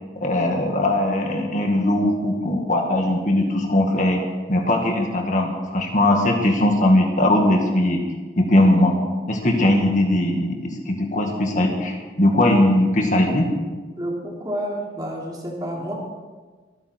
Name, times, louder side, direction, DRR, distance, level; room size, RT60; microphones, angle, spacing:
voice 1, 0.2-4.2 4.5-8.0 8.4-8.9 9.3-13.5, left 1 dB, 45° left, 2 dB, 2.0 m, -19 dB
voice 2, 14.0-15.9, equal, 20° right, -2 dB, 3.3 m, -29 dB
25.5 x 9.9 x 4.6 m, 1.4 s
head